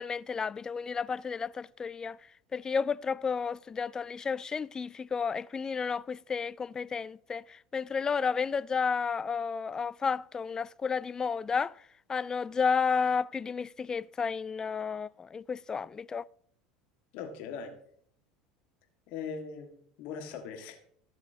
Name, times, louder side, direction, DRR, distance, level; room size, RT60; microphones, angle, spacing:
voice 1, 0.0-2.2 2.5-11.8 12.1-16.2, left 5 dB, 25° left, 0.3 m, -32 dB
voice 2, 17.1-17.7 19.1-19.7 20.0-20.8, left 6 dB, 60° left, 1.9 m, -39 dB
15.0 x 7.0 x 2.9 m
hypercardioid pair, 75°, 3 cm